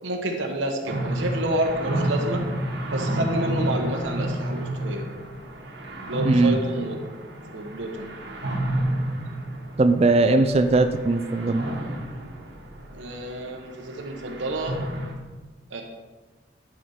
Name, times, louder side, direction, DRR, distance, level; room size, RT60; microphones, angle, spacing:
voice 1, 0.0-2.5 2.9-5.1 6.1-7.0 7.5-8.2 12.9-14.8 15.7-15.8, right 1 dB, 85° right, 2 dB, 1.0 m, -29 dB
sound 1, 0.9-15.1, right 1 dB, 65° right, 1.3 m, -30 dB
voice 2, 6.2-6.6 9.8-11.7, right 3 dB, 30° right, 8 dB, 0.4 m, -19 dB
11.0 x 5.0 x 4.3 m, 1.3 s
head